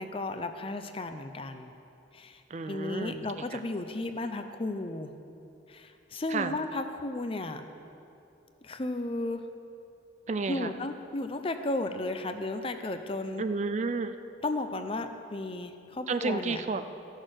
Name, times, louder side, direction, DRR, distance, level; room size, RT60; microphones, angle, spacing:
voice 1, 0.0-1.7 2.1-5.1 5.7-7.6 8.6-9.4 10.5-13.4 14.4-16.6, left 2 dB, 30° left, 8 dB, 0.5 m, -34 dB
voice 2, 2.5-3.3 3.5-3.6 6.3-6.6 10.3-10.7 13.4-14.2 16.1-16.8, right 4 dB, 40° right, 10 dB, 0.4 m, -31 dB
14.0 x 6.4 x 6.3 m, 2.8 s
head